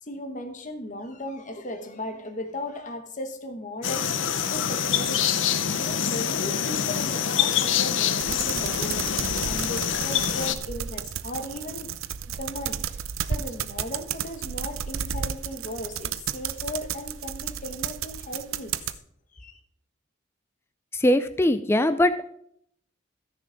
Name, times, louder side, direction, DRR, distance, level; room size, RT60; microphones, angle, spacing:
voice 1, 0.0-11.9 12.3-18.7 19.3-19.6, left 1 dB, 40° left, 6 dB, 1.2 m, -37 dB
sound 1, 3.8-10.6, left 8 dB, 65° left, 0.7 m, -25 dB
sound 2, 8.2-19.0, right 8 dB, 85° right, 0.6 m, -33 dB
voice 2, 20.9-22.3, left 1 dB, 10° left, 11 dB, 0.4 m, -22 dB
14.0 x 6.8 x 5.1 m, 0.69 s
head